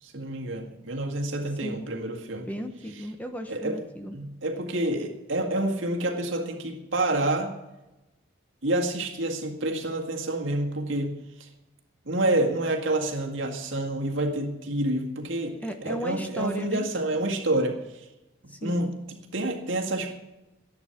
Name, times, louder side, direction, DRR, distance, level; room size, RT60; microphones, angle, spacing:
voice 1, 0.0-2.5 3.5-3.8 4.1-7.5 8.6-11.1 11.4-11.5 12.1-18.0 18.6-20.2, right 1 dB, 70° right, 2 dB, 1.9 m, -28 dB
voice 2, 2.4-4.2 15.6-16.9 18.5-18.9, equal, 10° left, 5 dB, 0.9 m, -35 dB
13.0 x 11.0 x 5.9 m, 1.0 s
head